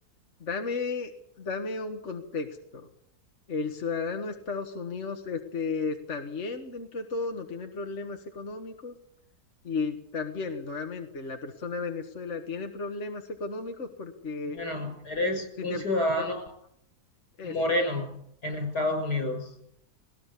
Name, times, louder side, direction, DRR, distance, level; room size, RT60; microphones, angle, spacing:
voice 1, 0.4-1.1 1.4-2.9 3.5-9.0 9.6-14.6 15.6-15.8 16.2-16.3 17.4-17.5, left 4 dB, 45° left, 4 dB, 1.9 m, -34 dB
voice 2, 14.5-16.4 17.4-18.1 18.4-19.5, left 1 dB, 75° left, 5 dB, 7.2 m, -29 dB
20.0 x 19.5 x 8.4 m, 0.72 s
omnidirectional pair, 1.7 m